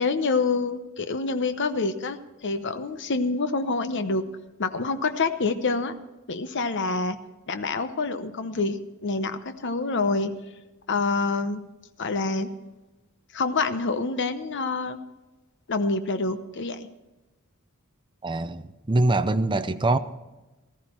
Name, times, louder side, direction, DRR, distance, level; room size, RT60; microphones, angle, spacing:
voice 1, 0.0-4.3 4.6-5.9 6.3-7.2 7.5-10.3 10.9-11.6 12.0-12.5 13.3-15.0 15.7-16.9, left 3 dB, 60° left, 10 dB, 0.9 m, -27 dB
voice 2, 18.2-20.0, right 2 dB, 20° right, 11 dB, 0.6 m, -23 dB
15.0 x 14.0 x 4.5 m, 1.1 s
head